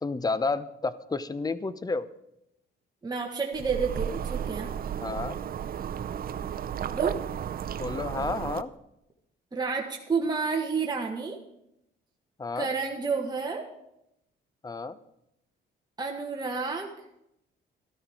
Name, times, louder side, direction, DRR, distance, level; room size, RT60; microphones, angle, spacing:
voice 1, 0.0-2.1 5.0-5.4 7.8-8.7 12.4-12.7 14.6-15.0, left 3 dB, 20° left, 15 dB, 0.8 m, -31 dB
voice 2, 3.0-4.7 6.9-7.2 9.5-11.4 12.5-13.7 16.0-16.9, right 4 dB, 20° right, 0 dB, 1.6 m, -30 dB
sound 1, 3.5-8.6, right 9 dB, 50° right, 0.6 m, -33 dB
13.0 x 12.5 x 4.8 m, 0.82 s
cardioid pair, 90°, 20 cm